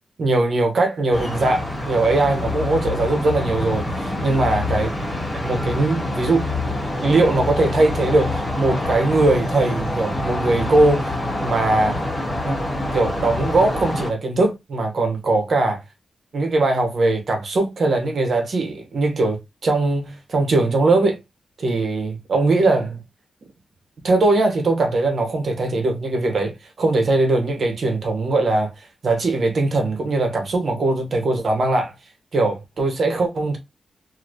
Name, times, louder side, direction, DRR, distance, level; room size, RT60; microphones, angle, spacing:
voice 1, 0.2-4.9 5.3-11.2 11.4-12.0 12.4-15.8 16.3-21.2 21.6-23.0 24.0-28.7 29.0-31.9 32.3-33.6, right 2 dB, 60° right, 1.1 m, -20 dB
sound 1, 1.1-14.1, left 2 dB, 25° left, 1.6 m, -26 dB
3.0 x 2.8 x 2.5 m
wide cardioid pair, 105°, 0 cm